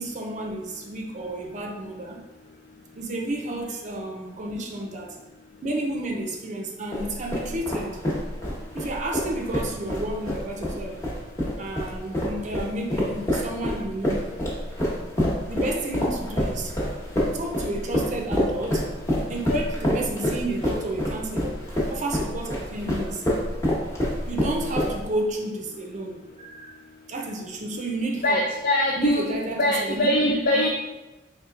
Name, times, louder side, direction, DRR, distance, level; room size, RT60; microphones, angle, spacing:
voice 1, 0.0-2.2 3.0-5.2 5.6-8.0 8.7-11.0 11.6-14.3 15.5-16.8 17.3-18.9 19.3-21.6 21.9-23.5 24.3-26.8 27.1-28.5 29.0-30.6, right 1 dB, 40° right, 1 dB, 0.5 m, -31 dB
sound 1, 6.9-25.2, equal, 15° left, 1.0 m, -27 dB
voice 2, 28.2-30.7, left 1 dB, 50° left, -1 dB, 0.4 m, -22 dB
4.4 x 3.3 x 2.4 m, 1.1 s
head